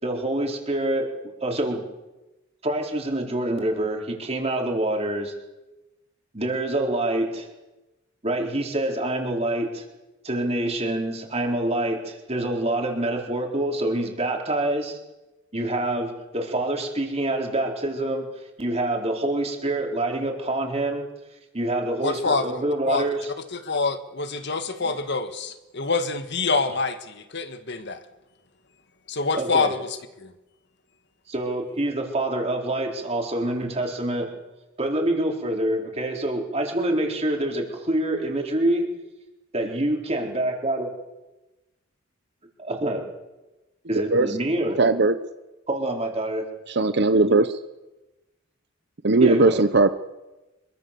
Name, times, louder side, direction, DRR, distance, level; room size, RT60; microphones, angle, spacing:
voice 1, 0.0-1.1 1.4-1.8 2.6-5.3 6.3-7.5 8.2-9.8 10.2-15.0 15.5-18.3 18.6-21.0 21.5-23.3 24.8-24.9 26.7-26.8 29.4-29.7 31.3-34.3 34.8-38.9 39.5-40.9 42.6-43.0 43.9-44.8 45.7-46.4 49.2-49.6, right 1 dB, 30° right, 1 dB, 4.4 m, -26 dB
voice 2, 22.0-23.1 23.5-28.0 29.1-29.9 30.2-30.3, left 4 dB, 60° left, 9 dB, 1.7 m, -26 dB
voice 3, 44.8-45.1 46.8-47.4 49.0-49.9, right 3 dB, 55° right, 11 dB, 0.9 m, -18 dB
25.5 x 23.0 x 7.0 m, 1.0 s
head